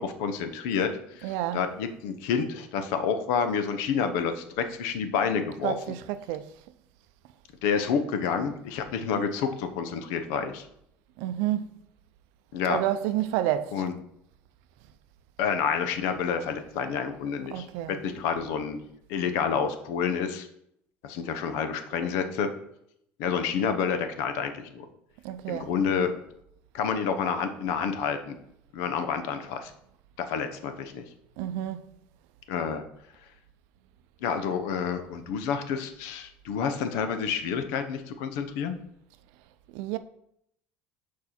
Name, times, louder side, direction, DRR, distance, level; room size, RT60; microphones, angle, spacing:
voice 1, 0.0-5.7 7.6-10.7 12.5-12.8 13.7-13.9 15.4-18.8 19.1-20.5 21.0-22.5 23.2-24.9 25.5-26.1 26.7-28.4 28.7-29.7 30.2-31.0 32.5-32.8 34.2-38.8, left 6 dB, 85° left, 0.9 m, -29 dB
voice 2, 1.2-1.7 5.6-6.5 11.2-11.7 12.6-13.8 17.5-18.0 25.2-25.7 31.4-31.8 39.7-40.0, right 12 dB, 75° right, 0.5 m, -29 dB
6.9 x 4.7 x 4.3 m
cardioid pair, 175°, 4 cm